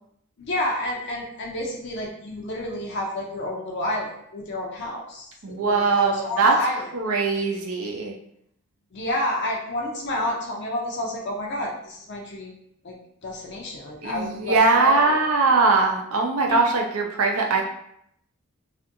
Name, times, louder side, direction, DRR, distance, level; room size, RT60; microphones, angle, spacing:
voice 1, 0.4-6.8 8.9-12.5 12.8-13.0 13.2-15.2 16.5-16.6 17.3-17.6, left 1 dB, 50° left, -1 dB, 0.4 m, -30 dB
voice 2, 5.4-6.5 6.9-8.1 14.0-17.6, right 3 dB, 75° right, 1 dB, 0.5 m, -21 dB
2.6 x 2.5 x 2.6 m, 0.73 s
head